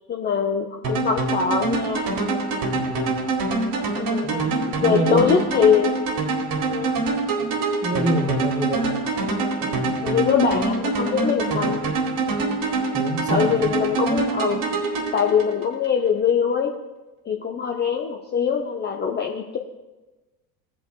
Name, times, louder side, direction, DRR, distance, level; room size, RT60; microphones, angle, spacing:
voice 1, 0.1-2.1 3.9-4.4 4.8-6.0 6.7-7.0 10.0-12.0 13.3-14.6 15.1-16.7 17.2-19.6, left 7 dB, 20° left, 2 dB, 0.7 m, -22 dB
sound 1, 0.8-15.9, right 3 dB, 40° right, 1.9 m, -25 dB
voice 2, 2.7-3.1 4.2-5.5 7.8-9.0 9.6-10.0 11.5-11.7 12.9-13.5, right 2 dB, 15° right, 3 dB, 1.6 m, -27 dB
16.5 x 8.5 x 2.4 m, 1.1 s
hypercardioid pair, 75°, 49 cm